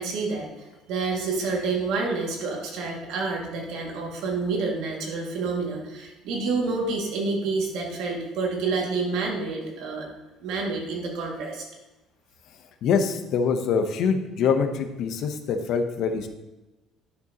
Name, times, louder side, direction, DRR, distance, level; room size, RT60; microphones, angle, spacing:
voice 1, 0.0-10.0 10.4-11.6, right 4 dB, 75° right, -1 dB, 2.2 m, -28 dB
voice 2, 12.8-16.3, left 6 dB, 60° left, 7 dB, 0.9 m, -24 dB
11.0 x 6.8 x 2.9 m, 1.0 s
cardioid pair, 150°, 0 cm